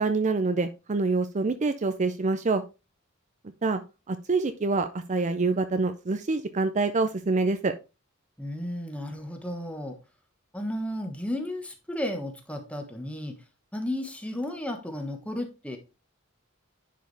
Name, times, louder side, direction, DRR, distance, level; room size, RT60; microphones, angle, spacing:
voice 1, 0.0-2.6 3.6-3.8 4.1-7.7, right 3 dB, 35° right, 9 dB, 0.5 m, -26 dB
voice 2, 8.4-10.0 10.5-13.4 13.7-15.8, left 1 dB, 5° left, 4 dB, 1.4 m, -33 dB
10.0 x 4.7 x 3.4 m, 0.28 s
head